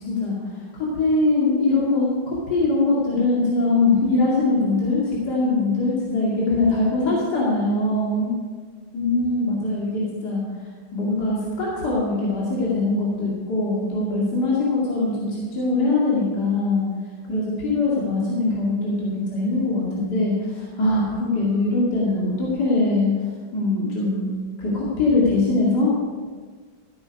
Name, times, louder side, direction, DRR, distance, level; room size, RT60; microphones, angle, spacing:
voice 1, 0.7-8.3 8.9-10.4 10.9-16.8 17.3-20.3 20.8-23.1 23.5-24.3 24.6-25.9, left 2 dB, 55° left, -6 dB, 3.0 m, -22 dB
15.0 x 8.5 x 5.3 m, 1.5 s
omnidirectional pair, 2.2 m